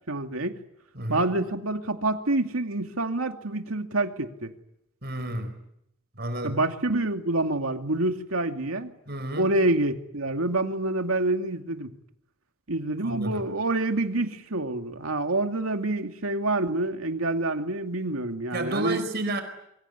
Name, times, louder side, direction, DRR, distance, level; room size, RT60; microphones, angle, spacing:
voice 1, 0.1-0.6 1.1-4.5 6.4-8.9 9.4-11.9 12.7-19.0, right 2 dB, 90° right, 2.5 m, -27 dB
voice 2, 0.9-1.3 5.0-5.6 6.2-6.6 9.1-9.5 13.0-13.4 18.5-19.4, right 1 dB, 50° right, 4.5 m, -31 dB
25.5 x 24.0 x 9.5 m
head